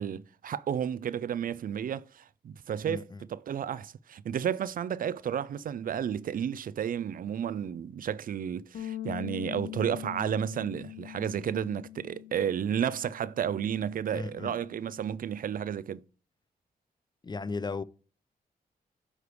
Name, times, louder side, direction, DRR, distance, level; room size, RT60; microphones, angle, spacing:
voice 1, 0.0-16.0, right 8 dB, 60° right, 0.4 m, -32 dB
voice 2, 2.8-3.3 14.1-14.5 17.2-17.8, left 4 dB, 25° left, 0.4 m, -36 dB
Bass guitar, 8.7-15.0, left 13 dB, 65° left, 0.8 m, -43 dB
9.4 x 3.3 x 4.8 m
cardioid pair, 55°, 16 cm